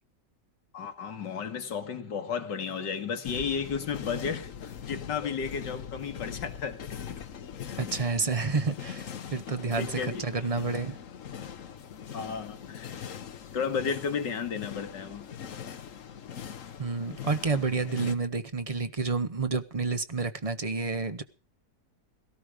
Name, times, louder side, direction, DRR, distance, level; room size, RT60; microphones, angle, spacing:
voice 1, 0.7-6.8 7.8-7.9 9.8-10.4 12.1-12.9 13.5-15.3, left 6 dB, 85° left, 2.3 m, -33 dB
sound 1, 3.2-18.1, left 8 dB, 55° left, 1.3 m, -41 dB
voice 2, 7.8-11.0 16.8-21.2, right 4 dB, 30° right, 0.7 m, -29 dB
17.5 x 13.0 x 5.0 m
omnidirectional pair, 1.8 m